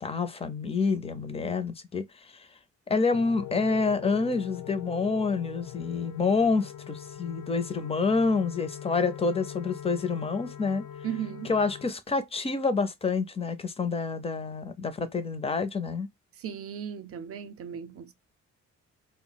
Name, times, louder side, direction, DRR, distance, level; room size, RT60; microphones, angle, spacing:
voice 1, 0.0-2.1 2.9-10.8 11.5-16.1, left 4 dB, 20° left, 0.5 m, -28 dB
sound 1, 3.1-11.9, left 11 dB, 85° left, 0.8 m, -42 dB
voice 2, 11.0-11.5 16.4-18.1, right 9 dB, 50° right, 0.5 m, -36 dB
2.3 x 2.1 x 3.8 m
cardioid pair, 110°, 30 cm